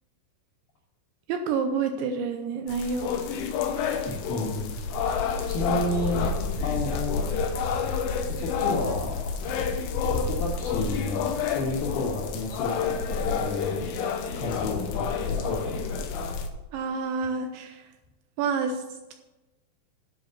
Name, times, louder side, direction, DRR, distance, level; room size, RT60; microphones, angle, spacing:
voice 1, 1.3-3.1 16.7-17.9 18.4-18.8, right 5 dB, 85° right, 5 dB, 2.8 m, -28 dB
sound 1, 2.7-16.5, left 5 dB, 85° left, 3.5 m, -29 dB
voice 2, 4.1-4.7 5.5-6.3 6.6-7.4 8.3-9.2 9.5-9.6 10.1-11.3 11.5-13.9 14.4-16.0, left 2 dB, 60° left, -5 dB, 2.7 m, -31 dB
10.5 x 5.7 x 7.7 m, 1.1 s
omnidirectional pair, 5.8 m